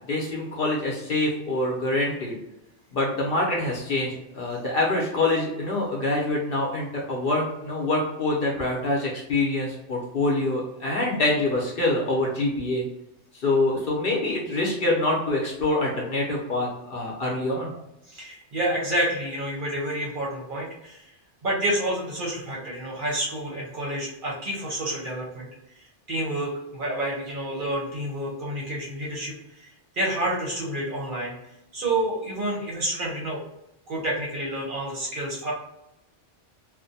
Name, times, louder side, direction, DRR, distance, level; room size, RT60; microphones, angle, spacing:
voice 1, 0.1-2.4 2.9-12.8 13.3-17.7, left 2 dB, 60° left, -3 dB, 0.7 m, -25 dB
voice 2, 18.1-21.1 21.4-25.5 26.1-29.7 29.9-31.3 31.7-33.4 33.9-35.5, right 1 dB, 55° right, -3 dB, 0.7 m, -29 dB
2.5 x 2.1 x 2.6 m, 0.87 s
omnidirectional pair, 1.3 m